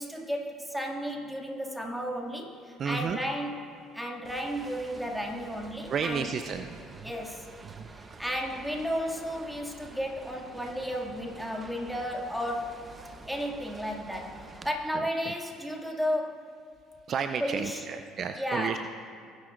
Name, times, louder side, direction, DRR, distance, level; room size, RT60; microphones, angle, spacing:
voice 1, 0.0-3.6 3.9-6.3 7.0-7.4 7.9-12.8 13.3-16.5 17.4-17.8 18.4-18.9, equal, ahead, -1 dB, 2.3 m, -33 dB
voice 2, 2.8-3.2 5.9-7.1 7.6-8.2 14.9-15.3 17.1-18.9, right 6 dB, 50° right, 8 dB, 0.5 m, -33 dB
sound 1, 4.2-14.7, right 3 dB, 30° right, 0.9 m, -49 dB
19.5 x 10.0 x 2.5 m, 2.4 s
hypercardioid pair, 65°, 0 cm